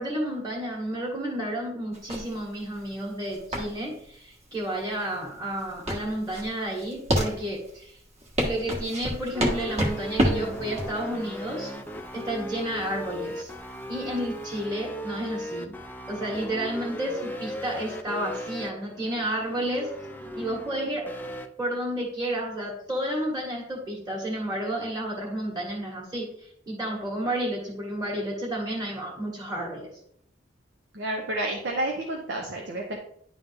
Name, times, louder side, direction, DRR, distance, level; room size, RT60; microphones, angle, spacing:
voice 1, 0.0-8.0 8.4-11.7 12.1-13.5 13.9-15.7 16.1-19.9 20.3-21.0 21.6-29.9, right 1 dB, 20° right, -5 dB, 1.8 m, -31 dB
sound 1, 1.9-14.6, equal, 35° right, 1.6 m, -30 dB
sound 2, 9.3-21.5, equal, 10° left, 0.5 m, -37 dB
voice 2, 30.9-33.0, right 1 dB, 65° right, 0 dB, 0.9 m, -30 dB
10.5 x 3.9 x 3.5 m, 0.67 s
head